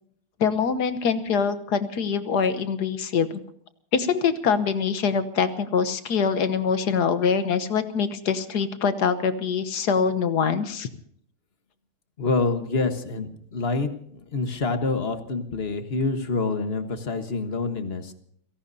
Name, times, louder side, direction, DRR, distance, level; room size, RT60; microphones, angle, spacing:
voice 1, 0.4-3.4 3.9-10.9, left 6 dB, 55° left, 11 dB, 1.5 m, -24 dB
voice 2, 12.2-18.1, left 3 dB, 35° left, 7 dB, 1.4 m, -27 dB
29.5 x 17.5 x 2.8 m, 0.65 s
omnidirectional pair, 2.3 m